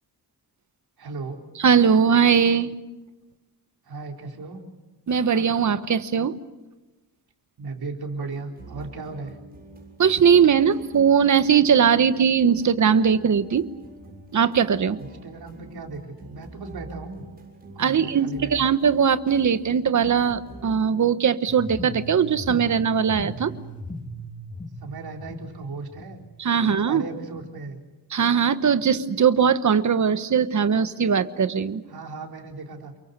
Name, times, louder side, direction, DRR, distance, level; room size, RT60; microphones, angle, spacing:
voice 1, 1.0-1.4 3.8-4.6 7.6-9.4 15.0-17.2 17.7-18.7 24.8-26.2 26.6-27.8 31.9-32.9, right 3 dB, 65° right, 2 dB, 4.1 m, -36 dB
voice 2, 1.6-2.7 5.1-6.4 10.0-13.7 14.3-15.0 17.8-23.5 26.4-27.0 28.1-31.8, right 7 dB, 45° right, 12 dB, 1.2 m, -20 dB
sound 1, 8.3-20.8, right 2 dB, 20° right, 7.1 m, -45 dB
sound 2, 21.5-27.5, equal, 20° left, 2.4 m, -39 dB
29.5 x 23.5 x 6.9 m, 1.1 s
wide cardioid pair, 145°, 41 cm